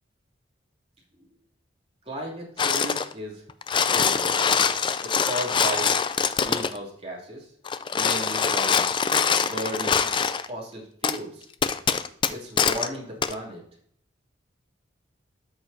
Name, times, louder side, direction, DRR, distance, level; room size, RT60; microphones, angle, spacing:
voice 1, 2.0-3.4 3.8-4.5 5.0-5.9 6.4-7.5 7.9-8.8 9.4-10.0 10.5-11.5 12.3-13.6, right 1 dB, 30° right, -4 dB, 2.7 m, -35 dB
sound 1, 2.6-3.1 3.5-6.8 7.6-10.5 11.0-11.2 11.6-12.9 13.2-13.3, left 6 dB, 25° left, 0.3 m, -23 dB
13.0 x 6.5 x 2.7 m, 0.65 s
head